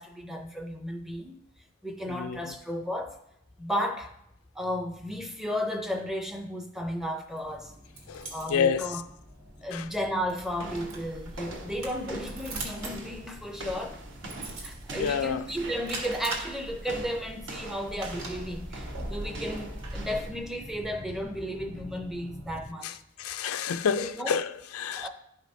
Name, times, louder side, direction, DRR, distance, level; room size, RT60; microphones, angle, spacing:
voice 1, 0.0-1.4 1.8-3.2 3.6-4.1 4.6-7.7 8.3-9.0 9.6-14.0 14.6-22.9 24.0-24.4 24.9-25.1, equal, ahead, 0.5 m, -34 dB
sound 1, 7.3-22.7, right 2 dB, 80° right, 1.7 m, -43 dB
voice 2, 8.1-8.9 9.7-9.9 14.9-15.4 22.8-22.9 23.2-25.1, left 7 dB, 85° left, 0.4 m, -29 dB
sound 2, 10.5-20.4, right 1 dB, 60° right, 1.1 m, -41 dB
12.0 x 5.0 x 2.7 m
head